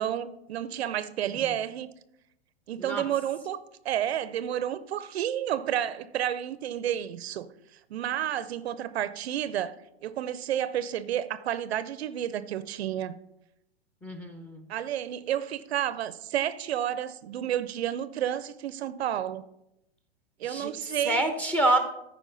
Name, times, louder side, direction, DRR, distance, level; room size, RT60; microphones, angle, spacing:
voice 1, 0.0-1.9 2.7-3.6 3.8-7.5 7.9-9.7 10.0-13.2 14.7-19.4 20.4-21.2, right 11 dB, 70° right, 0.6 m, -30 dB
voice 2, 14.0-14.7 20.4-20.7 21.0-21.8, right 2 dB, 5° left, 0.9 m, -27 dB
13.5 x 4.9 x 3.9 m
hypercardioid pair, 125°, 33 cm